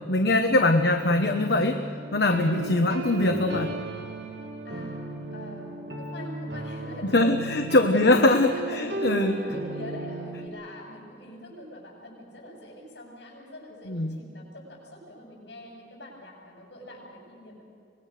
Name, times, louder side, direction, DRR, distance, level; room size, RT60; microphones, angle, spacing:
voice 1, 0.0-1.8 2.1-3.7 7.1-9.3 13.9-14.1, left 2 dB, 70° left, 5 dB, 1.1 m, -22 dB
sound 1, 1.0-10.5, right 2 dB, 80° right, 2.2 m, -35 dB
voice 2, 4.6-5.7 6.0-17.6, left 1 dB, 85° left, -1 dB, 7.7 m, -43 dB
25.0 x 20.5 x 6.6 m, 2.4 s
head